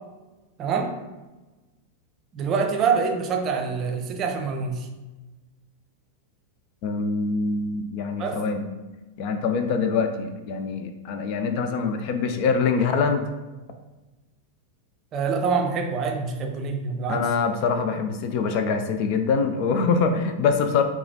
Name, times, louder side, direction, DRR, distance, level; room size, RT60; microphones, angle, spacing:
voice 1, 0.6-1.0 2.3-4.9 8.2-8.4 15.1-17.3, right 5 dB, 30° right, 4 dB, 0.5 m, -25 dB
voice 2, 6.8-8.6 9.2-13.2 17.1-20.8, left 5 dB, 45° left, 6 dB, 0.4 m, -24 dB
4.7 x 2.4 x 2.6 m, 1.1 s
figure-of-eight pair, 90°, 0 cm